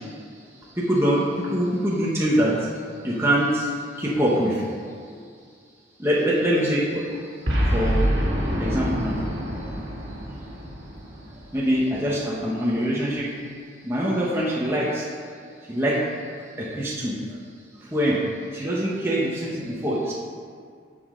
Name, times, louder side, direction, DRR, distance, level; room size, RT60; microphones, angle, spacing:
voice 1, 0.8-2.6 3.0-3.7 4.0-4.6 6.0-7.0 7.7-8.0 8.6-9.2 9.5-9.6 11.5-13.3 13.8-15.1 15.7-16.0 16.6-17.2 17.9-18.2 18.5-20.1, equal, 15° right, -6 dB, 1.2 m, -23 dB
Boom, 7.5-11.9, equal, 65° right, 2.0 m, -26 dB
9.8 x 7.0 x 3.8 m, 2.1 s
head